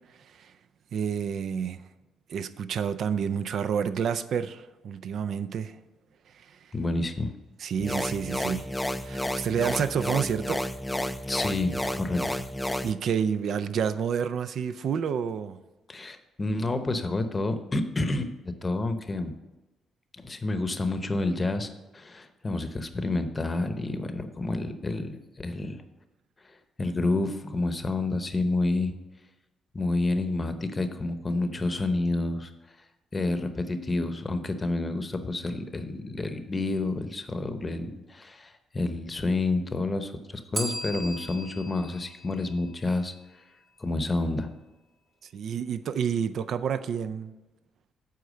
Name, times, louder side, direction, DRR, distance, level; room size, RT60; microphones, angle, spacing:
voice 1, 0.9-1.8 2.3-5.7 6.3-6.5 7.6-8.7 9.0-10.6 12.8-15.6 45.3-47.3, right 7 dB, 65° right, 0.4 m, -29 dB
voice 2, 6.7-7.3 11.3-12.4 15.9-18.3 18.6-19.3 20.2-21.7 21.9-25.8 26.8-28.9 29.7-32.5 33.1-43.1 43.8-44.5, left 2 dB, 25° left, 0.8 m, -29 dB
sound 1, 7.8-12.9, left 1 dB, 10° left, 0.4 m, -31 dB
Bell, 40.5-43.4, right 2 dB, 45° right, 1.4 m, -38 dB
8.2 x 4.6 x 6.3 m
cardioid pair, 90°, 0 cm